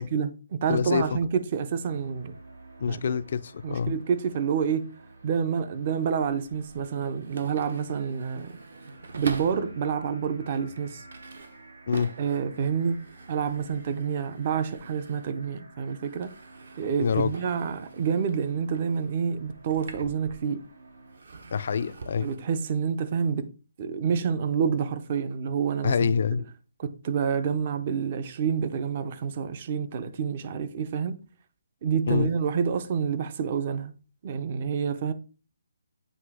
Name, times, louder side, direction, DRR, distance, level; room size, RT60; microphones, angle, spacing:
voice 1, 0.0-2.3 2.9-3.2 3.6-4.9 5.2-8.6 9.2-11.0 12.2-16.3 16.8-20.6 22.2-23.5 23.8-26.1 26.8-31.2 31.8-33.9 34.2-35.1, right 6 dB, 30° right, 0.5 m, -28 dB
voice 2, 0.7-1.1 2.8-4.0 11.9-12.1 17.0-17.3 21.5-22.3 25.8-26.4 32.1-32.3, left 6 dB, 45° left, 0.4 m, -26 dB
sound 1, 1.8-21.2, right 2 dB, 80° right, 2.6 m, -50 dB
sound 2, 5.8-9.8 10.4-15.6 15.9-20.7 21.1-22.4, right 3 dB, 60° right, 1.0 m, -44 dB
7.8 x 2.8 x 4.8 m
hypercardioid pair, 170°, 0 cm